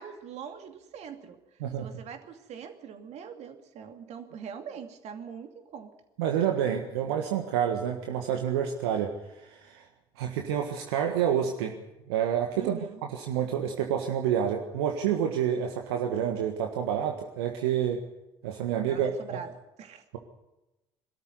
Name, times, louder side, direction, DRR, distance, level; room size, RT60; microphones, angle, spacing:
voice 1, 0.0-1.4 1.8-5.9 12.5-13.0 18.9-19.5 19.8-20.0, right 7 dB, 55° right, 6 dB, 2.6 m, -42 dB
voice 2, 1.6-1.9 6.2-9.8 10.2-11.8 12.1-12.8 13.1-18.0 18.4-19.1, right 9 dB, 75° right, 3 dB, 1.6 m, -28 dB
22.5 x 13.0 x 9.5 m, 0.98 s
hypercardioid pair, 60°, 13 cm